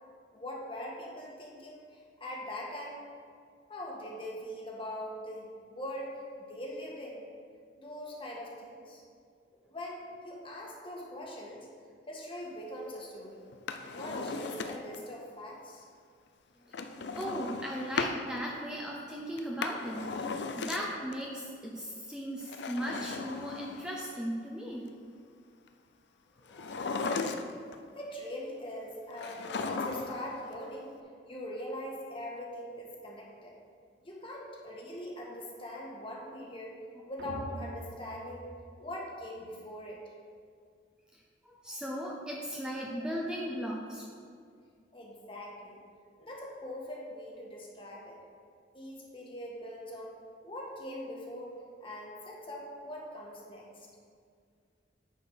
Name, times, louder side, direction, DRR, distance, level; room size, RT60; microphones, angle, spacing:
voice 1, 0.3-3.0 3.7-6.2 6.5-7.3 7.8-9.0 9.7-11.7 12.1-13.5 13.9-15.8 27.9-30.9 31.2-33.5 34.0-36.8 37.1-38.5 38.8-40.0 44.9-45.8 46.2-48.2 48.7-50.2 50.4-51.5 51.8-53.9, left 1 dB, 30° left, -2 dB, 1.5 m, -42 dB
Drawer open or close, 13.5-15.0 16.7-18.2 19.4-21.1 22.4-24.1 26.5-27.7 29.2-30.3 30.5-30.6, left 4 dB, 65° left, 0.5 m, -36 dB
voice 2, 17.1-24.8 26.4-26.9 41.4-44.3, equal, 5° right, -3 dB, 0.7 m, -37 dB
sound 1, 37.2-39.5, right 2 dB, 60° right, 0.5 m, -45 dB
9.6 x 4.9 x 5.7 m, 2.2 s
head